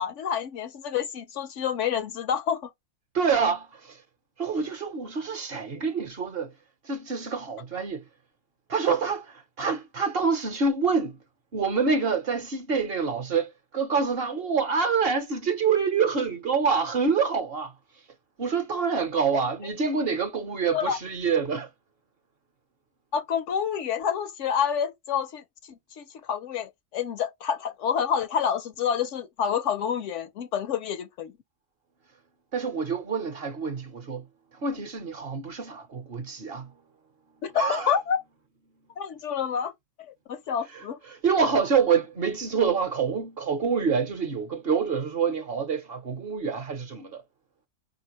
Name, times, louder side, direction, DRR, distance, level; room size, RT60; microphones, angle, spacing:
voice 1, 0.0-2.7 20.7-21.0 23.1-31.3 37.4-38.2 39.0-39.7 40.3-41.0, left 8 dB, 70° left, 0.8 m, -28 dB
voice 2, 3.1-4.0 4.4-6.5 6.8-8.0 8.7-11.2 11.5-17.7 18.4-21.7 32.5-34.2 34.6-36.7 37.5-38.0 41.1-47.2, right 5 dB, 50° right, 0.9 m, -26 dB
4.7 x 2.7 x 2.9 m
omnidirectional pair, 1.4 m